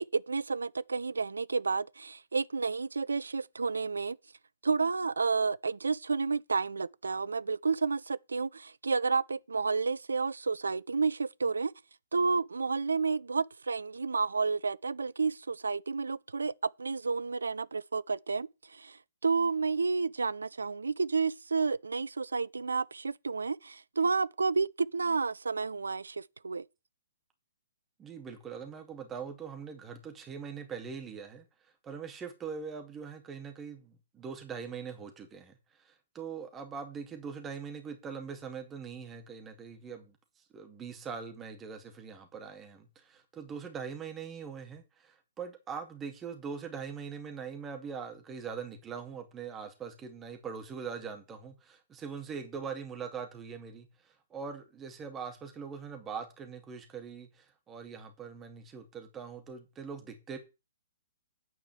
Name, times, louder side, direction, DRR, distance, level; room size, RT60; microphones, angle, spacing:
voice 1, 0.0-4.2 4.6-11.7 12.1-19.0 19.2-26.6, right 4 dB, 70° right, 0.4 m, -31 dB
voice 2, 28.0-31.4 31.8-40.2 40.5-60.4, right 6 dB, 15° right, 2.2 m, -42 dB
9.5 x 4.8 x 7.8 m
figure-of-eight pair, 120°, 0 cm